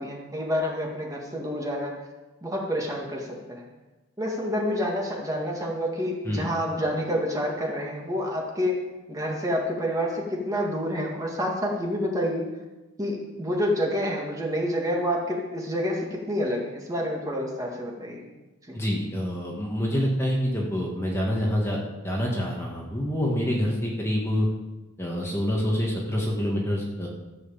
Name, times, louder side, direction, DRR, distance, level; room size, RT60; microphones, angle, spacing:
voice 1, 0.0-1.9 2.4-3.7 4.2-8.8 9.1-12.4 13.0-18.2 18.7-18.8, equal, 15° right, -1 dB, 2.0 m, -28 dB
voice 2, 18.7-21.8 22.0-24.5 25.0-27.1, equal, 10° left, -2 dB, 1.7 m, -26 dB
14.0 x 6.3 x 7.3 m, 1.1 s
head